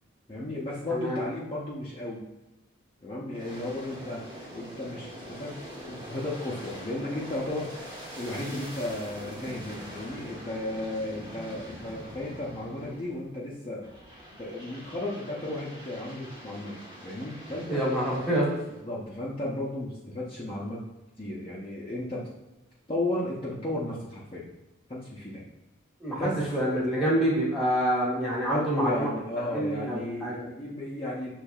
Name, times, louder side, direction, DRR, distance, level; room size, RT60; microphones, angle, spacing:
voice 1, 0.3-2.2 3.0-5.6 5.9-13.9 14.4-16.8 17.0-17.8 18.8-20.8 21.2-22.3 22.9-24.5 24.9-25.4 26.2-26.4 26.9-27.2 28.5-31.3, left 1 dB, 25° left, -7 dB, 0.7 m, -34 dB
voice 2, 0.9-1.2 17.7-18.6 26.0-29.1 29.5-30.5, right 1 dB, ahead, -6 dB, 1.4 m, -27 dB
Aircraft, 3.3-13.4 13.8-18.8, equal, 20° right, 1.0 m, -44 dB
6.4 x 3.2 x 2.3 m, 1.1 s
head